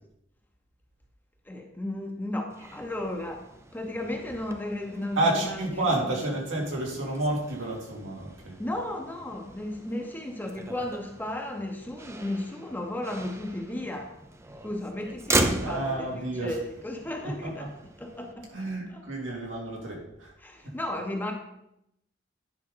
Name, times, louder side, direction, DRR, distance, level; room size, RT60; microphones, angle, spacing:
voice 1, 1.4-3.5 3.7-5.9 8.6-14.2 14.6-17.7 18.0-19.0 20.4-21.3, left 1 dB, 10° left, 2 dB, 0.9 m, -34 dB
Motor vehicle (road), 2.5-18.3, right 2 dB, 15° right, 0.5 m, -37 dB
voice 2, 5.2-8.5 15.6-16.5 17.4-17.5 18.5-20.3, right 2 dB, 80° right, -2 dB, 2.4 m, -30 dB
10.0 x 5.3 x 3.9 m, 0.80 s
head